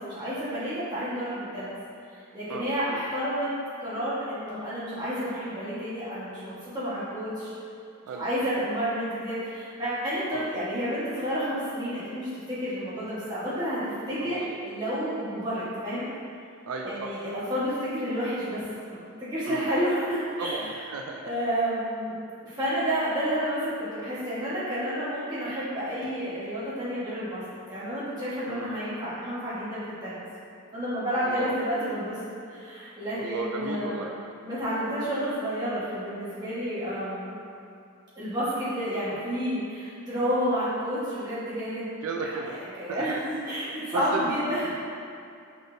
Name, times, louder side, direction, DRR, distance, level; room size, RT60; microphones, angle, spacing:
voice 1, 0.0-1.7 2.1-3.5 3.8-7.5 8.1-16.1 16.8-20.8 21.2-22.1 22.4-27.4 27.7-30.2 30.7-32.2 32.5-34.0 34.4-37.4 38.1-41.9 42.2-44.7, equal, 20° right, -11 dB, 1.2 m, -30 dB
voice 2, 2.5-3.0 8.1-8.3 10.3-10.5 14.2-14.5 16.7-17.2 19.5-19.7 20.4-21.2 28.5-28.7 31.2-31.6 33.2-34.1 39.1-39.2 42.0-42.6 42.9-43.2 43.9-44.3, right 3 dB, 75° right, 1 dB, 0.3 m, -35 dB
5.0 x 3.9 x 2.6 m, 2.5 s
head